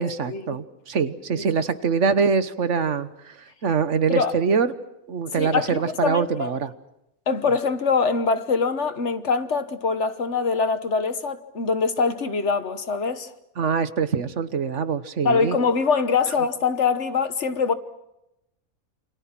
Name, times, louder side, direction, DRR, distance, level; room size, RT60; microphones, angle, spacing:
voice 1, 0.0-4.7 5.1-6.7 13.6-15.6, right 5 dB, 55° right, 1.4 m, -24 dB
voice 2, 5.4-6.5 7.3-13.3 15.2-17.7, left 5 dB, 55° left, 1.5 m, -23 dB
28.5 x 26.0 x 6.1 m
omnidirectional pair, 1.5 m